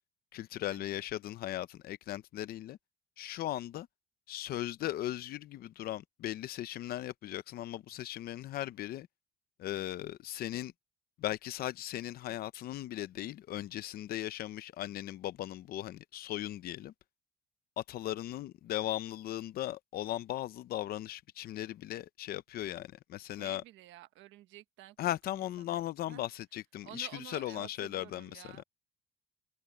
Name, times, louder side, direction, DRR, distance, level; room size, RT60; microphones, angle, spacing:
voice 1, 0.3-2.8 3.2-3.9 4.3-9.1 9.6-10.7 11.2-16.9 17.8-23.6 25.0-28.4, left 13 dB, 50° left, 0.7 m, -38 dB
voice 2, 23.2-26.2 26.8-28.6, right 15 dB, 75° right, 1.3 m, -52 dB
cardioid pair, 180°, 20 cm